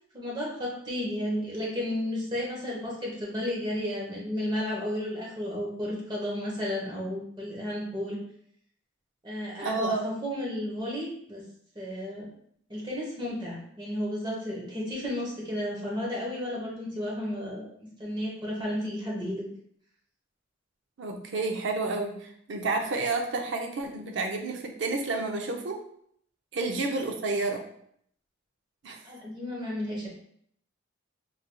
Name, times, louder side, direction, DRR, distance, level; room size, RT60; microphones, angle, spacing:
voice 1, 0.1-8.2 9.2-11.4 11.7-12.3 12.7-17.7 18.0-19.4 26.5-26.8 29.0-30.1, left 1 dB, 25° right, -3 dB, 1.0 m, -33 dB
voice 2, 9.6-10.0 21.0-25.8 26.5-27.6 28.8-29.0, right 3 dB, 65° right, 3 dB, 0.5 m, -30 dB
3.7 x 3.2 x 2.2 m, 0.66 s
head